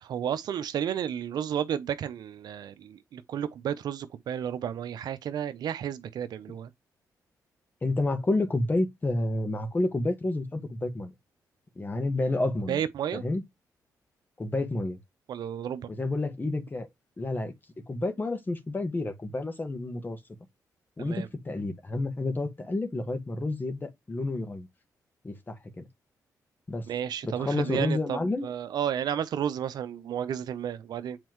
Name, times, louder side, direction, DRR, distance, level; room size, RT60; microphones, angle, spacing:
voice 1, 0.0-6.7 12.7-13.2 15.3-15.9 21.0-21.3 26.9-31.2, right 9 dB, 80° right, 0.7 m, -32 dB
voice 2, 7.8-11.1 11.7-12.8 13.1-13.4 14.4-15.0 15.9-16.9 17.2-17.5 17.9-20.2 21.0-24.7 25.2-25.9 26.7-26.9 27.2-28.5, left 2 dB, 30° left, 1.6 m, -30 dB
7.6 x 4.3 x 3.1 m
cardioid pair, 75°, 7 cm